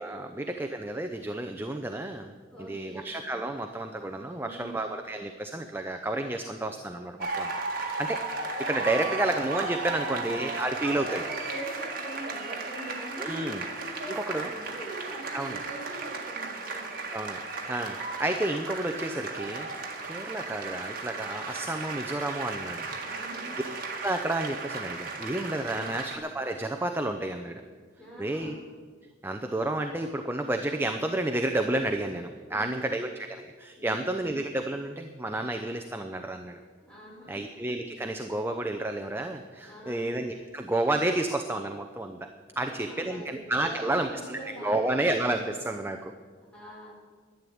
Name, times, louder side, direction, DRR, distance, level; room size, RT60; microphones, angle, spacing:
voice 1, 0.0-2.3 2.6-8.2 8.6-11.2 13.2-14.5 15.3-15.6 17.1-22.9 24.0-27.6 28.2-28.5 29.2-36.6 37.3-42.3 42.6-46.1, right 1 dB, 10° right, 5 dB, 0.6 m, -31 dB
voice 2, 2.5-3.1 4.4-4.8 9.1-9.2 10.0-10.3 10.6-17.0 23.0-23.6 25.7-26.0 28.0-28.6 32.5-32.9 33.8-34.0 36.8-37.5 39.7-40.2 42.5-45.6 46.5-46.9, right 1 dB, 5° left, -6 dB, 5.6 m, -43 dB
sound 1, 7.2-26.2, right 3 dB, 50° right, 1.8 m, -35 dB
11.5 x 11.0 x 8.6 m, 1.6 s
head